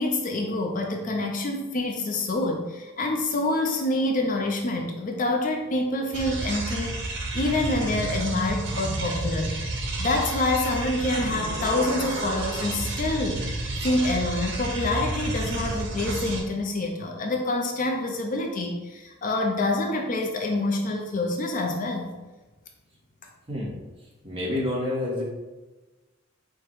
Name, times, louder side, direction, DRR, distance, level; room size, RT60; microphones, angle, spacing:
voice 1, 0.0-9.5 10.0-13.4 13.8-22.1, left 2 dB, 40° left, 2 dB, 0.5 m, -27 dB
sound 1, 6.1-16.4, right 2 dB, 60° right, 0.8 m, -31 dB
voice 2, 24.2-25.2, left 1 dB, 25° right, -4 dB, 1.2 m, -28 dB
4.9 x 2.2 x 4.5 m, 1.2 s
head